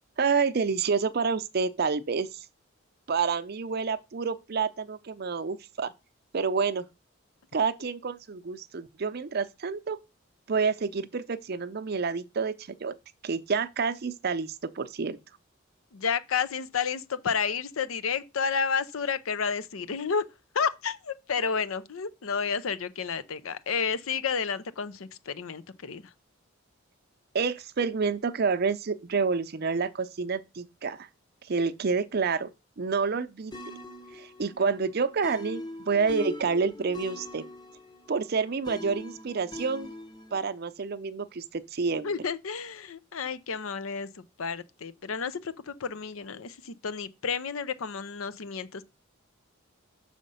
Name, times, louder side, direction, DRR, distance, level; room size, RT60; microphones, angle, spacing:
voice 1, 0.2-2.4 3.1-5.9 6.3-6.8 7.5-10.0 10.5-12.9 13.2-15.2 27.3-31.1 31.5-32.5 32.8-33.5 34.1-37.4 38.1-39.9 40.3-42.1, right 5 dB, 50° right, 0.5 m, -28 dB
voice 2, 15.9-20.2 20.5-26.1 42.0-48.8, left 6 dB, 85° left, 0.6 m, -31 dB
sound 1, 33.5-40.4, left 2 dB, 20° left, 0.8 m, -41 dB
6.4 x 5.0 x 5.5 m
head